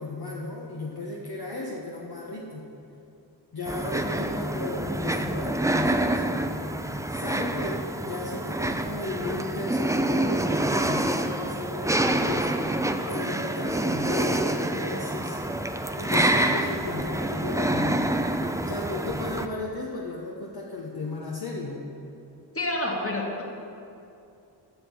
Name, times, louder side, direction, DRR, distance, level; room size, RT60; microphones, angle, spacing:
voice 1, 0.0-2.7 3.5-6.2 7.1-12.6 13.0-15.4 16.0-18.2 18.7-21.8, left 2 dB, 55° left, -2 dB, 1.0 m, -35 dB
sound 1, 3.7-19.5, right 1 dB, 5° right, 0.5 m, -27 dB
voice 2, 22.5-23.4, left 1 dB, 30° left, 0 dB, 1.8 m, -28 dB
8.0 x 6.1 x 7.0 m, 2.7 s
cardioid pair, 40°, 45 cm